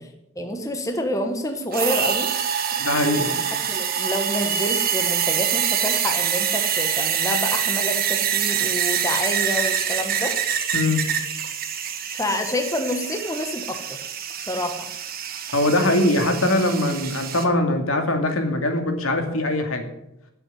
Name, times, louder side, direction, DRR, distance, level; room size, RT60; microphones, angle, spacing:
voice 1, 0.3-2.3 2.7-10.4 12.1-14.0 14.4-14.9, left 1 dB, 15° left, 5 dB, 1.1 m, -28 dB
sound 1, 1.7-17.4, right 8 dB, 40° right, 1.4 m, -25 dB
voice 2, 2.8-3.3 10.7-11.0 15.5-19.9, left 1 dB, 75° left, 5 dB, 2.4 m, -22 dB
11.5 x 8.3 x 9.6 m, 0.84 s
head